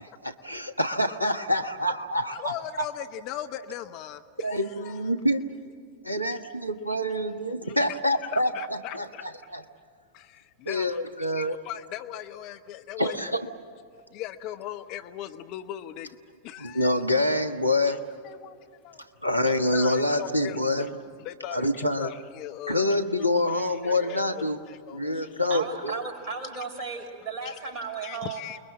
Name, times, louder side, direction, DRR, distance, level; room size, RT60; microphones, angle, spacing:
voice 1, 0.2-2.9 4.4-5.4 6.0-9.6 10.7-11.6 13.0-13.5 16.6-18.0 19.2-20.9 21.5-22.1 22.7-24.6 24.9-25.9, left 1 dB, 90° left, 6 dB, 1.2 m, -26 dB
voice 2, 2.3-5.1 6.3-6.4 7.6-9.3 10.1-13.2 14.1-16.2 16.4-17.0 17.9-18.0 18.2-19.0 19.5-20.9 21.2-23.0 23.5-25.4 27.4-27.6 28.0-28.6, left 11 dB, 40° left, 9 dB, 0.9 m, -39 dB
voice 3, 25.5-28.4, right 4 dB, 35° right, 2 dB, 5.6 m, -35 dB
29.0 x 22.0 x 7.5 m, 2.3 s
figure-of-eight pair, 90°, 0 cm